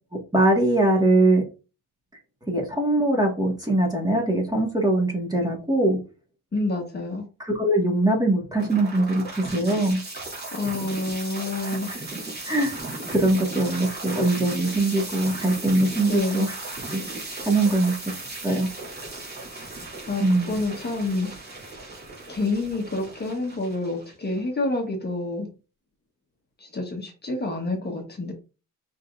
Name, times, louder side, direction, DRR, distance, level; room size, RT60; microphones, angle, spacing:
voice 1, 0.3-1.4 2.5-6.0 7.4-9.2 9.5-10.0 12.4-12.8 13.1-16.5 16.9-17.0 17.4-17.9 18.4-18.7 20.2-20.6, right 2 dB, 10° right, -1 dB, 1.7 m, -22 dB
voice 2, 6.5-7.2 10.5-11.9 16.1-16.4 20.1-21.3 22.3-25.5 26.6-28.3, left 2 dB, 30° left, 1 dB, 1.2 m, -28 dB
sound 1, 8.6-24.6, right 2 dB, 30° right, 2.3 m, -36 dB
5.5 x 3.7 x 2.5 m, 0.31 s
cardioid pair, 140°, 33 cm